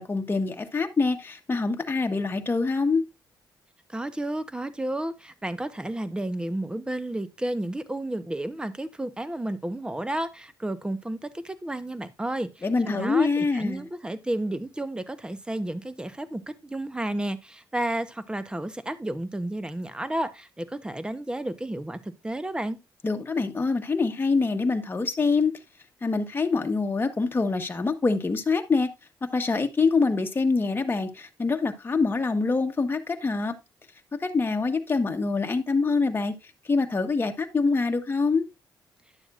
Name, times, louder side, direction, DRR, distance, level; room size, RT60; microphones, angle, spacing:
voice 1, 0.0-3.0 12.6-13.8 23.0-25.5 26.0-28.9 29.2-33.5 34.2-36.3 36.7-38.5, left 4 dB, 30° left, 1.4 m, -25 dB
voice 2, 3.9-22.8, right 1 dB, 10° right, 1.0 m, -32 dB
11.0 x 7.0 x 2.6 m
cardioid pair, 80°, 8 cm